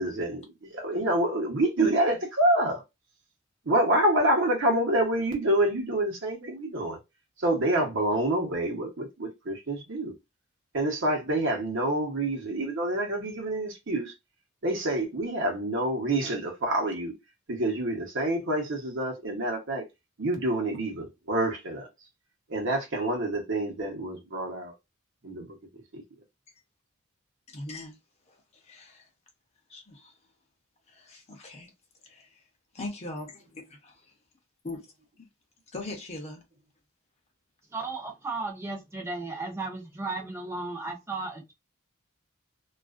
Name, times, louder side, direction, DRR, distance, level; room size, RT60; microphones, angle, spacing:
voice 1, 0.0-2.8 3.7-7.0 7.4-10.1 10.7-14.1 14.6-17.1 17.5-19.8 20.2-21.9 22.5-24.7 25.2-25.5 25.9-26.0, right 1 dB, 60° right, 0.8 m, -27 dB
voice 2, 27.5-28.0 28.3-28.4 28.6-29.0 29.7-30.1 30.9-31.7 32.0-32.3 32.7-33.3 33.8-34.0 34.6-34.8 35.7-36.4, left 2 dB, 30° left, 0.7 m, -40 dB
voice 3, 37.7-41.5, right 3 dB, 10° right, 0.7 m, -35 dB
2.4 x 2.1 x 2.4 m
head